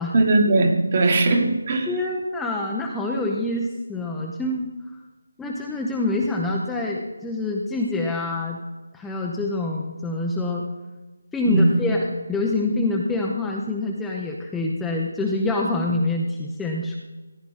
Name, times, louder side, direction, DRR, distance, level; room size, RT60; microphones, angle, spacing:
voice 1, 0.1-1.9 11.4-11.8, right 2 dB, 35° right, 4 dB, 1.6 m, -19 dB
voice 2, 1.9-4.7 5.4-8.6 8.9-10.6 11.3-17.0, left 2 dB, 5° left, -2 dB, 0.7 m, -26 dB
15.0 x 9.4 x 4.1 m, 1.2 s
figure-of-eight pair, 165°, 0 cm